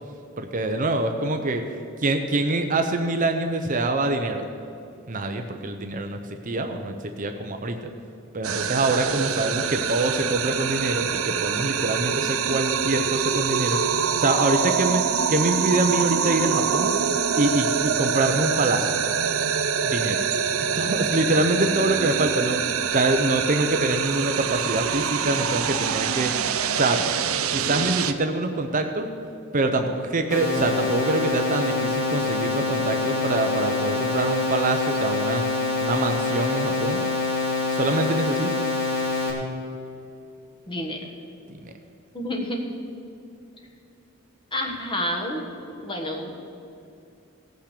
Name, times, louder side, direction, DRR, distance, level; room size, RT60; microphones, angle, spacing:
voice 1, 0.4-1.6 2.0-4.4 5.1-7.9 8.3-13.8 14.2-15.0 15.3-16.9 17.4-19.0 19.8-20.2 20.8-26.3 26.7-27.1 27.5-29.1 29.5-35.4 35.8-37.0 37.7-38.6 41.5-41.7, right 2 dB, 40° right, 6 dB, 0.7 m, -25 dB
sound 1, 8.4-28.1, right 7 dB, 80° right, 0.6 m, -25 dB
sound 2, 30.3-39.3, left 3 dB, 70° left, 3.0 m, -25 dB
voice 2, 40.7-41.0 42.1-42.6 44.5-45.4 45.7-46.3, equal, 25° left, 1 dB, 1.4 m, -29 dB
17.0 x 5.8 x 6.7 m, 2.7 s
head